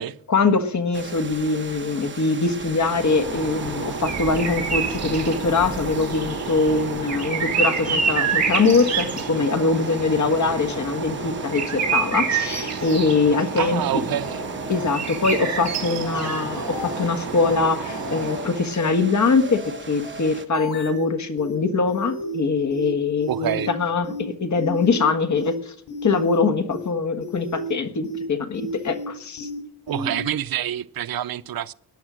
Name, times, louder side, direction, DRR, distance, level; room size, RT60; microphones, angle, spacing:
voice 1, 0.3-13.8 14.7-25.7 26.0-29.5, left 4 dB, 50° left, 1.5 m, -23 dB
sound 1, 0.9-20.5, right 5 dB, 30° right, 1.1 m, -39 dB
sound 2, 2.8-18.7, right 5 dB, 45° right, 3.9 m, -28 dB
voice 2, 13.6-14.4 23.3-23.7 29.9-31.7, right 11 dB, 70° right, 0.6 m, -27 dB
sound 3, 14.2-14.4 14.7-14.9 15.2-15.7 16.0-16.2 16.5-17.1 17.4-17.6 17.9-18.4 18.7-18.9 19.2-19.7 20.0-20.2 20.5-21.1 21.4-21.6 21.9-22.4 22.7-22.9 23.2-23.7 24.0-24.2 24.5-25.1 25.4-25.6 25.9-26.4 26.7-26.9 27.2-27.7 28.0-28.2 28.5-29.1 29.4-29.6 29.9-30.2, equal, 85° left, 6.8 m, -34 dB
18.0 x 10.0 x 6.2 m
wide cardioid pair, 125°, 37 cm